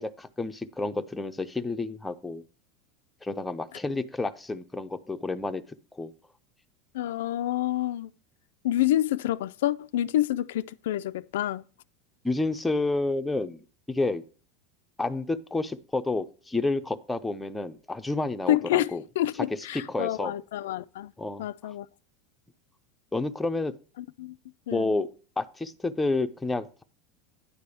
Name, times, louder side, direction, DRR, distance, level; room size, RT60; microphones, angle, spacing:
voice 1, 0.0-2.4 3.2-6.1 12.2-14.2 15.0-19.0 19.7-20.3 21.2-21.5 23.1-23.7 24.7-25.1 25.4-26.8, left 2 dB, 5° left, 0.5 m, -30 dB
voice 2, 6.9-8.1 8.6-11.6 18.5-21.1 21.4-21.9 24.2-24.3 24.7-24.9, left 13 dB, 90° left, 0.3 m, -28 dB
9.9 x 3.4 x 6.8 m
supercardioid pair, 150°, 0 cm